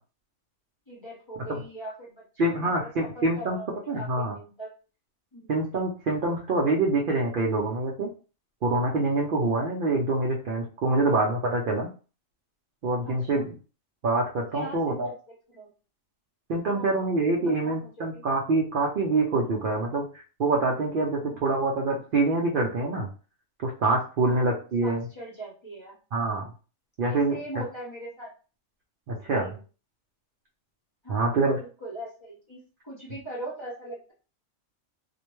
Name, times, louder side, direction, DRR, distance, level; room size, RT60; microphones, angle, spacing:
voice 1, 0.9-2.2 2.5-4.7 5.3-5.6 10.9-11.1 13.0-13.5 14.5-15.7 16.7-16.9 17.4-18.2 21.2-21.5 24.2-24.5 24.8-26.5 27.1-28.3 29.3-29.6 31.0-32.6 32.8-34.1, right 1 dB, 25° left, -5 dB, 0.7 m, -41 dB
voice 2, 2.4-3.6 3.9-4.3 5.5-8.1 8.6-11.9 12.8-13.5 14.0-15.1 16.5-20.0 20.4-23.1 23.6-25.0 26.1-26.5 27.0-27.4 29.1-29.5 31.1-31.6, right 2 dB, 60° right, -1 dB, 0.5 m, -25 dB
2.5 x 2.1 x 2.9 m, 0.35 s
omnidirectional pair, 1.4 m